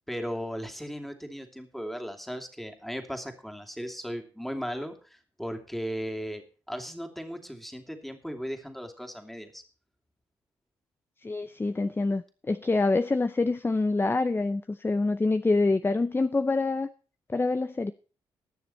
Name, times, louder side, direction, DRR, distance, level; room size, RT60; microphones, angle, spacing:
voice 1, 0.1-9.6, equal, ahead, 2.7 m, -37 dB
voice 2, 11.2-16.9 17.3-17.9, left 3 dB, 20° left, 0.6 m, -26 dB
20.0 x 6.9 x 4.3 m
supercardioid pair, 55°, 11 cm